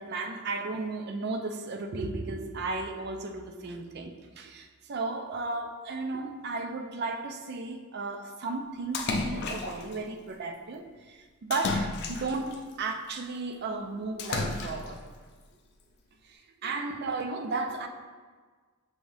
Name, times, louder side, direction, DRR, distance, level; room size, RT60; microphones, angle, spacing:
voice 1, 0.0-15.0 16.3-17.9, right 3 dB, 55° right, 6 dB, 0.4 m, -34 dB
Splash splatter, 8.9-9.9 11.5-12.6 14.2-15.0, left 3 dB, 55° left, 0.4 m, -32 dB
6.1 x 3.2 x 2.6 m, 1.5 s
head